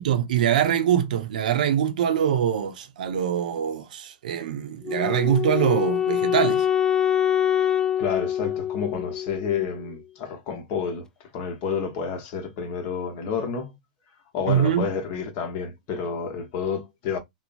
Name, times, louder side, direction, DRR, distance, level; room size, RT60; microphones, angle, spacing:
voice 1, 0.0-6.7 14.5-14.9, right 9 dB, 70° right, 0.6 m, -23 dB
Wind instrument woodwind instrument, 4.8-9.9, left 9 dB, 15° left, 0.3 m, -25 dB
voice 2, 8.0-11.0 11.3-13.7 14.3-17.2, left 6 dB, 45° left, 0.9 m, -29 dB
3.0 x 2.0 x 2.5 m
hypercardioid pair, 115°, 4 cm